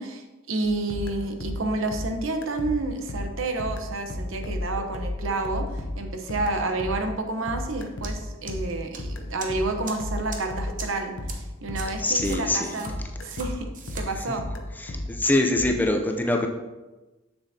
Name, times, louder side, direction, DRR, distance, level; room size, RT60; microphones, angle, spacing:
voice 1, 0.0-12.9 13.2-13.7 13.9-14.4, right 2 dB, 70° right, 5 dB, 0.9 m, -30 dB
sound 1, 0.6-12.6 12.9-15.7, left 1 dB, 65° left, 0.7 m, -34 dB
sound 2, 8.0-8.1 8.5-9.0 9.4-9.5 9.8-9.9 10.3-10.4 10.8-10.9 11.3-11.4 11.7-11.8 12.2-12.9 13.3-13.5 13.7-14.0, right 5 dB, 40° right, 0.9 m, -38 dB
voice 2, 12.0-12.8 14.8-16.5, left 1 dB, 10° left, 3 dB, 0.5 m, -24 dB
7.1 x 7.1 x 2.8 m, 1.1 s
head